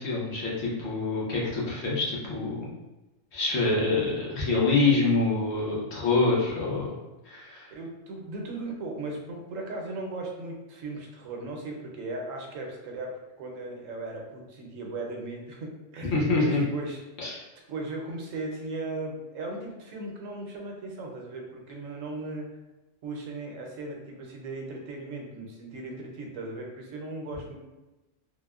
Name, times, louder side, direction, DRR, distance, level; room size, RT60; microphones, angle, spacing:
voice 1, 0.0-2.6 3.3-6.9 7.2-7.7 16.1-16.6 17.2-17.4, left 3 dB, 75° left, -5 dB, 1.2 m, -26 dB
voice 2, 7.7-13.1 13.4-17.0 17.7-22.5 23.0-27.5, right 2 dB, 80° right, 1 dB, 1.0 m, -37 dB
3.4 x 2.1 x 2.3 m, 1.1 s
omnidirectional pair, 1.3 m